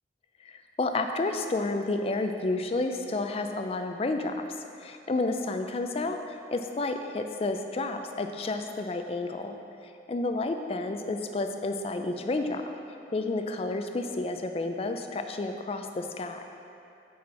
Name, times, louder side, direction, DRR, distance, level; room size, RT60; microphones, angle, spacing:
voice 1, 0.4-4.4 4.8-6.2 6.5-9.6 10.1-12.6 13.1-16.4, left 2 dB, 35° left, 6 dB, 0.4 m, -30 dB
8.5 x 4.3 x 4.3 m, 2.7 s
head